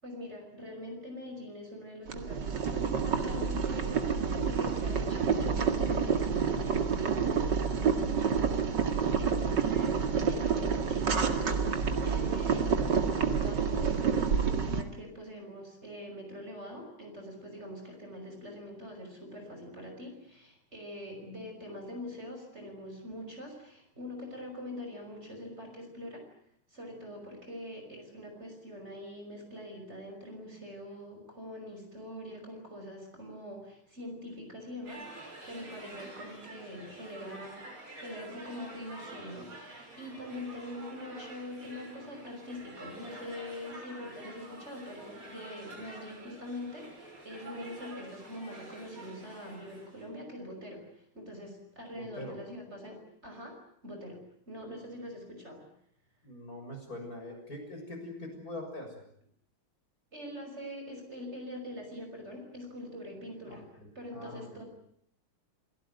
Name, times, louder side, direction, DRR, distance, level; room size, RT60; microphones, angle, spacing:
voice 1, 0.0-4.0 4.3-26.2 26.7-37.6 38.0-53.6 53.8-54.2 54.5-55.6 60.1-63.6 63.9-64.6, left 1 dB, 30° right, 3 dB, 6.3 m, -44 dB
Boiling, 2.1-14.8, right 6 dB, 55° right, 2.6 m, -28 dB
sound 1, 34.9-50.1, right 2 dB, 75° right, 6.9 m, -48 dB
voice 2, 52.0-52.4 56.2-58.9 63.5-63.6 64.1-64.6, left 1 dB, 40° left, 2 dB, 7.3 m, -42 dB
29.0 x 17.5 x 9.5 m, 0.68 s
omnidirectional pair, 2.3 m